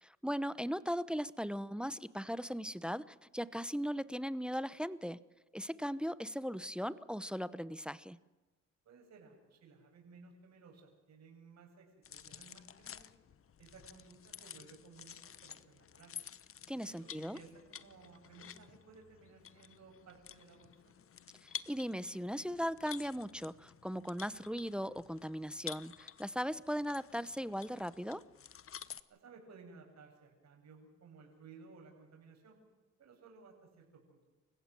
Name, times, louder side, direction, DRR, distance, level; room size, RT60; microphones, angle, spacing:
voice 1, 0.0-5.2 5.5-8.2 16.7-17.4 21.4-28.2, equal, 5° right, 17 dB, 0.8 m, -38 dB
voice 2, 8.8-13.1 13.6-16.1 16.7-21.0 29.1-32.6 33.0-34.2, right 4 dB, 60° right, 2 dB, 8.0 m, -58 dB
sound 1, 12.0-29.0, left 8 dB, 45° left, 1.1 m, -51 dB
28.5 x 16.0 x 7.8 m, 1.1 s
cardioid pair, 90°, 30 cm